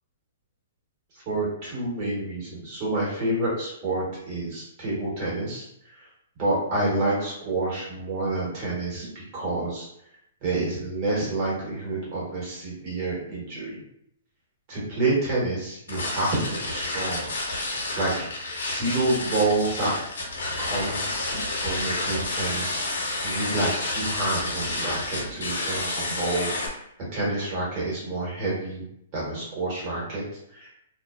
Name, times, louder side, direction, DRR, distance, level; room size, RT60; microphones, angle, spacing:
voice 1, 1.3-5.7 6.4-9.9 10.4-13.8 14.7-17.3 17.9-18.3 18.7-19.9 20.6-21.0 21.6-22.9 23.2-26.6 27.1-28.8 29.1-30.2 30.5-30.7, right 2 dB, 40° right, -6 dB, 1.3 m, -28 dB
sound 1, 15.9-26.7, left 2 dB, 80° left, 0.8 m, -30 dB
2.5 x 2.1 x 2.3 m, 0.75 s
hypercardioid pair, 125°, 0 cm